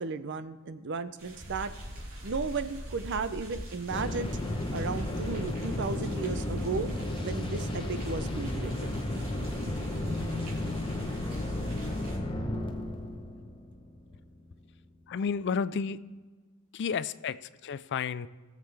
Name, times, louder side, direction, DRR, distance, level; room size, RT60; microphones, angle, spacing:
voice 1, 0.0-4.4 4.7-6.9 7.2-8.9, right 4 dB, 55° right, 12 dB, 0.6 m, -35 dB
sound 1, 1.2-12.2, right 1 dB, 80° right, 3.7 m, -45 dB
sound 2, 3.9-14.7, left 1 dB, 20° left, 1.0 m, -33 dB
voice 2, 15.1-16.0 16.7-18.3, left 6 dB, 50° left, 16 dB, 0.4 m, -31 dB
20.0 x 7.4 x 3.4 m, 1.4 s
head